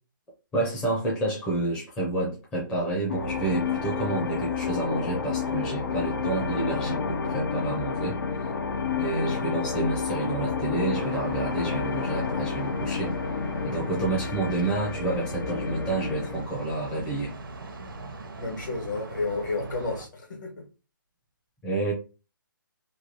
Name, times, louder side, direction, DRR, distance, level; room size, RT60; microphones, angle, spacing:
voice 1, 0.5-8.5 9.0-13.1 13.6-17.3 21.6-21.9, right 2 dB, 10° left, -5 dB, 0.5 m, -29 dB
sound 1, 3.1-16.4, left 5 dB, 75° left, 0.5 m, -30 dB
sound 2, 11.0-20.1, right 2 dB, 75° right, 0.6 m, -41 dB
voice 2, 18.4-20.5, left 3 dB, 60° left, 1 dB, 1.4 m, -31 dB
3.1 x 2.3 x 2.7 m, 0.32 s
hypercardioid pair, 160°, 11 cm